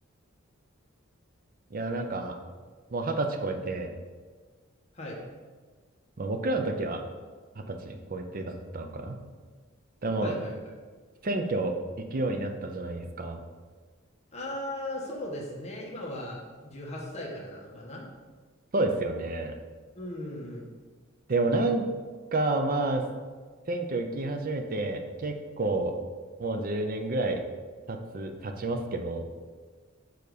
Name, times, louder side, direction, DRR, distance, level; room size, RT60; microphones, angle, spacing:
voice 1, 1.7-2.4 2.9-3.9 6.2-7.0 7.6-9.2 10.0-10.3 11.2-13.4 18.7-19.5 21.3-21.9 22.3-23.1 23.7-25.9 26.4-27.4 27.9-29.2, right 2 dB, 45° right, 6 dB, 0.6 m, -29 dB
voice 2, 10.2-10.6 14.3-18.1 19.9-20.7, left 1 dB, 30° left, -3 dB, 1.4 m, -37 dB
6.8 x 4.0 x 5.0 m, 1.4 s
head